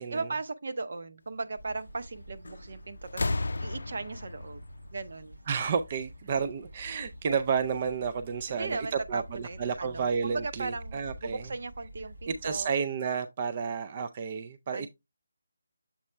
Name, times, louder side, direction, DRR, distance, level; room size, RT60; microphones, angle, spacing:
voice 1, 0.1-3.3 3.6-4.6 4.9-5.4 8.5-12.7 14.7-14.9, right 3 dB, 60° right, 0.8 m, -37 dB
sound 1, 1.6-12.6, right 1 dB, 90° right, 1.7 m, -48 dB
sound 2, 2.4-2.7 3.1-5.8 6.9-7.0, left 2 dB, 75° left, 0.4 m, -34 dB
voice 2, 5.5-11.4 12.3-14.9, right 6 dB, 30° right, 0.4 m, -31 dB
7.2 x 4.2 x 3.3 m
figure-of-eight pair, 165°, 0 cm